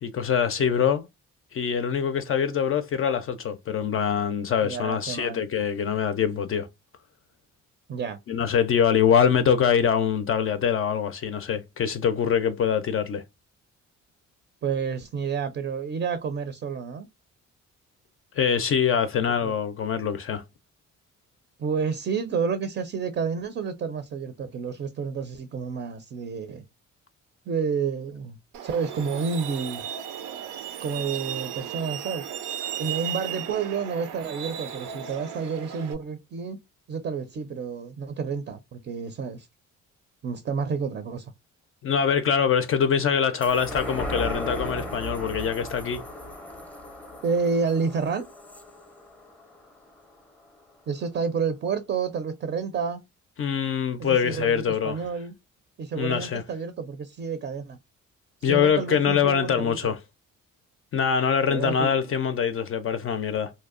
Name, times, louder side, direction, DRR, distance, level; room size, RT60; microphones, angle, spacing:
voice 1, 0.0-1.0 1.5-6.7 8.3-13.2 18.4-20.4 41.8-46.0 53.4-55.0 56.0-56.4 58.4-60.0 60.9-63.5, left 7 dB, 45° left, 0.4 m, -24 dB
voice 2, 4.6-5.4 7.9-8.2 14.6-17.1 19.4-19.5 21.6-26.6 27.5-29.9 30.8-32.3 32.8-36.6 36.9-39.5 40.2-41.3 47.2-48.3 50.9-53.0 54.0-55.3 55.8-57.8 58.4-59.9 61.5-62.0, right 5 dB, 40° right, 0.5 m, -30 dB
Truck, 28.5-35.9, right 10 dB, 85° right, 0.5 m, -35 dB
sound 1, 43.4-50.2 50.6-50.7, equal, 5° left, 0.6 m, -36 dB
2.7 x 2.0 x 2.4 m
cardioid pair, 90°, 30 cm